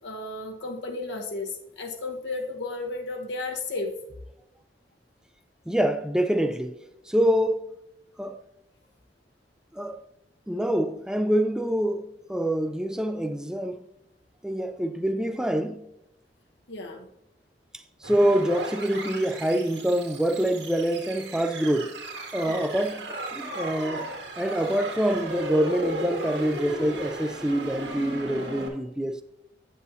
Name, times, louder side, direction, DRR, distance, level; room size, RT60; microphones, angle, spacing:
voice 1, 0.0-3.9 16.7-17.1 22.4-22.7, left 3 dB, 80° left, 1.0 m, -33 dB
voice 2, 5.7-6.8 7.1-7.7 8.2-8.4 9.7-10.0 10.5-13.9 14.4-15.8 18.0-22.0 22.3-24.1 24.4-29.2, right 1 dB, 5° right, 0.4 m, -26 dB
sound 1, 18.0-28.7, right 1 dB, 75° right, 1.8 m, -35 dB
8.3 x 8.1 x 2.7 m
head